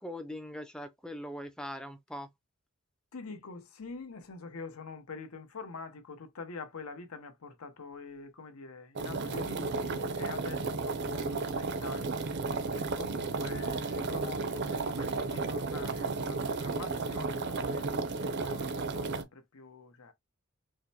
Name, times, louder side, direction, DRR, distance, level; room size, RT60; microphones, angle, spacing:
voice 1, 0.0-2.3, left 1 dB, 5° left, 0.4 m, -41 dB
voice 2, 3.1-12.2 12.7-20.1, left 4 dB, 80° left, 0.8 m, -45 dB
sound 1, 9.0-19.2, right 3 dB, 50° right, 0.5 m, -33 dB
4.9 x 2.1 x 2.8 m
head